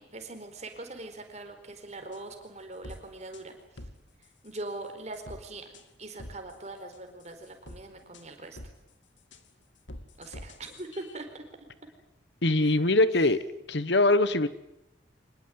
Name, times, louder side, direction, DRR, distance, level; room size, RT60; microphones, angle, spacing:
voice 1, 0.0-3.8 4.2-5.7 6.0-8.6 10.2-11.3 12.6-12.8, right 2 dB, 35° right, 6 dB, 4.4 m, -42 dB
sound 1, 2.1-2.2 2.8-3.0 3.3-3.4 3.8-3.9 4.2-4.6 5.1-5.4 5.7-5.8 6.2-6.6 6.9-7.8 8.1-8.2 8.6-8.7 9.2-9.5 9.9-11.2, left 1 dB, 80° left, 2.3 m, -45 dB
voice 2, 12.4-13.4 13.7-14.5, left 2 dB, 65° left, 15 dB, 1.1 m, -22 dB
25.0 x 20.5 x 9.5 m, 0.87 s
head